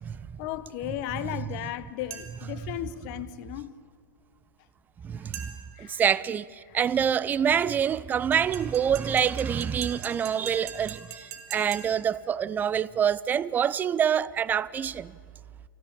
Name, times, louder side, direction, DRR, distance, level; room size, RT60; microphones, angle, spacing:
voice 1, 0.4-3.7 5.8-6.0 6.7-6.8, left 13 dB, 40° left, 1.0 m, -35 dB
sound 1, 2.1-2.6 5.3-5.8 8.3-12.2, right 8 dB, 50° right, 3.0 m, -43 dB
voice 2, 5.0-5.5 5.8-15.1, right 8 dB, 15° right, 0.5 m, -26 dB
24.5 x 15.5 x 8.6 m
figure-of-eight pair, 105°, 11 cm